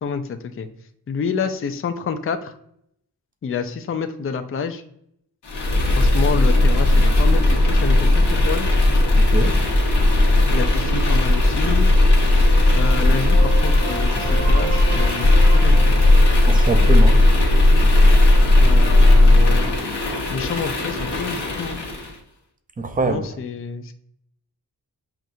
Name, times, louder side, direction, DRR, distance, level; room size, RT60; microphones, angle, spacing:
voice 1, 1.1-2.5 3.4-4.8 6.0-8.7 10.5-11.9 12.8-16.0 18.6-19.7 20.3-21.8 23.1-23.9, left 5 dB, 35° left, 0.4 m, -28 dB
sound 1, 5.4-22.2, left 1 dB, 85° left, 1.0 m, -16 dB
sound 2, 12.1-17.8, right 4 dB, 85° right, 1.1 m, -34 dB
voice 2, 16.5-17.2 22.8-23.2, right 3 dB, 20° right, 0.5 m, -23 dB
5.7 x 2.5 x 2.6 m
wide cardioid pair, 80°, 40 cm